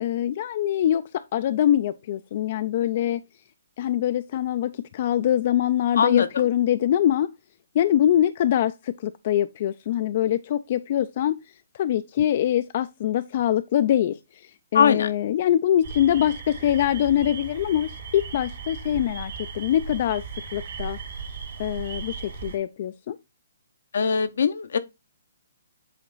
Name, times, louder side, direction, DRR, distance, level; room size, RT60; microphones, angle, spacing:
voice 1, 0.0-3.2 3.8-7.3 7.7-11.4 11.7-14.2 14.7-20.2 20.5-21.0 21.6-23.2, left 11 dB, 45° left, 0.4 m, -23 dB
voice 2, 6.0-6.3 14.7-15.1 23.9-24.8, left 6 dB, 70° left, 0.7 m, -21 dB
sound 1, 15.8-22.6, right 5 dB, 60° right, 2.6 m, -37 dB
7.7 x 3.6 x 3.9 m
hypercardioid pair, 145°, 0 cm